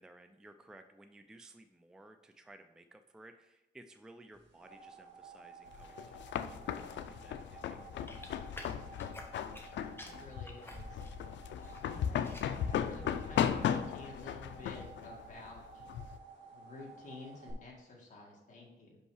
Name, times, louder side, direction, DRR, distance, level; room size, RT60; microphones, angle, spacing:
voice 1, 0.0-8.5, right 2 dB, 5° right, 7 dB, 0.3 m, -57 dB
sound 1, 4.3-17.5, right 4 dB, 80° right, 1.8 m, -54 dB
sound 2, 5.7-16.2, left 9 dB, 85° left, 0.4 m, -36 dB
sound 3, 8.1-9.7 10.0-11.8 12.1-12.6 13.0-13.4, left 2 dB, 10° left, 0.8 m, -50 dB
voice 2, 10.0-11.0 11.6-15.6 16.5-19.0, left 2 dB, 40° left, -3 dB, 1.8 m, -51 dB
5.5 x 5.4 x 4.8 m, 0.97 s
wide cardioid pair, 155°, 18 cm